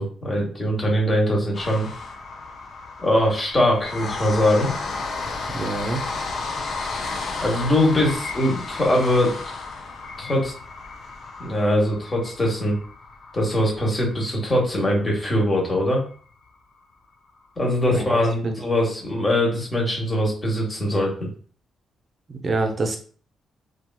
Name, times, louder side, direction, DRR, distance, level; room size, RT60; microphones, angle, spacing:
voice 1, 0.0-1.9 3.0-4.7 7.4-9.4 10.2-10.5 11.4-12.8 13.3-16.0 17.6-21.3, left 1 dB, 25° left, -1 dB, 1.1 m, -22 dB
sound 1, 1.5-15.7 16.1-16.2 16.5-16.6, left 3 dB, 55° left, 0.5 m, -33 dB
voice 2, 5.5-6.0 17.9-18.6 22.3-23.0, right 2 dB, 40° right, 4 dB, 0.6 m, -26 dB
2.9 x 2.4 x 2.2 m, 0.43 s
cardioid pair, 90°, 0 cm